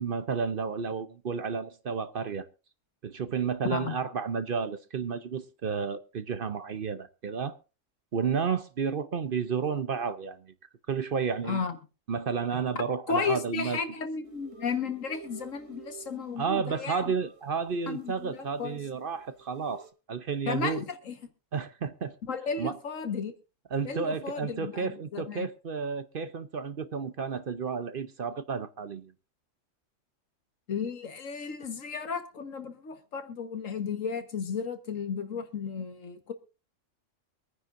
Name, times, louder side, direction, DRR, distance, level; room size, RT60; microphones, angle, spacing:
voice 1, 0.0-2.5 3.0-7.6 8.1-10.5 10.9-11.6 12.1-13.8 16.4-20.8 21.5-22.1 22.6-22.8 23.7-29.1, right 6 dB, 50° right, 0.8 m, -31 dB
voice 2, 11.4-11.8 13.1-17.0 17.9-18.8 20.5-21.1 22.3-23.3 23.8-25.5 30.7-36.3, left 5 dB, 80° left, 1.7 m, -34 dB
sound 1, 14.2-19.9, right 9 dB, 75° right, 2.9 m, -52 dB
24.5 x 9.6 x 2.6 m
omnidirectional pair, 1.3 m